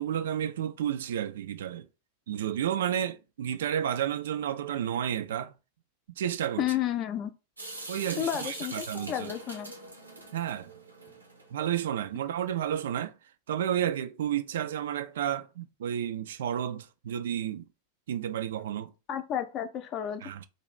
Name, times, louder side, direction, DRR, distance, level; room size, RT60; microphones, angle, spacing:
voice 1, 0.0-1.9 2.3-5.5 6.2-6.6 7.9-9.3 10.3-10.7 11.5-13.1 13.5-17.7 18.1-18.9 20.2-20.5, right 10 dB, 60° right, 0.3 m, -31 dB
voice 2, 6.6-7.3 8.2-9.7 19.1-20.3, left 10 dB, 35° left, 0.5 m, -31 dB
Water tap faucet / Sink (filling or washing) / Drip, 7.6-11.7, right 2 dB, 80° right, 0.7 m, -43 dB
2.6 x 2.4 x 3.1 m
figure-of-eight pair, 90°, 0 cm